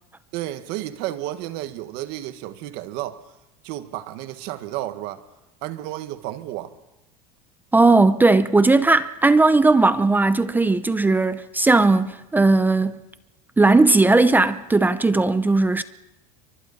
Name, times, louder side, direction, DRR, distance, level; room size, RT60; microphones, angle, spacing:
voice 1, 0.3-3.2 3.6-5.2 5.6-6.7, right 14 dB, 60° right, 1.7 m, -32 dB
voice 2, 7.7-13.0 13.6-15.8, right 3 dB, 10° right, 0.7 m, -17 dB
28.5 x 24.0 x 4.2 m
supercardioid pair, 125°, 19 cm